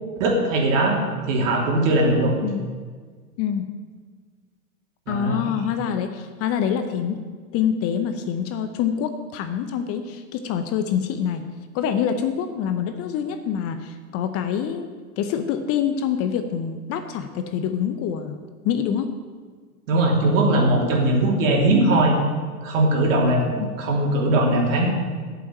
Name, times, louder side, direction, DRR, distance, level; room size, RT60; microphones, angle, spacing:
voice 1, 0.2-1.0 1.3-2.3 5.1-5.4 19.9-22.2 22.6-24.9, right 2 dB, 55° right, 0 dB, 3.3 m, -20 dB
voice 2, 5.1-7.2 7.5-11.4 11.7-14.9 15.2-18.4 18.6-19.1 23.6-23.7, left 8 dB, 30° left, 8 dB, 0.8 m, -25 dB
8.5 x 8.1 x 8.9 m, 1.6 s
figure-of-eight pair, 100°, 46 cm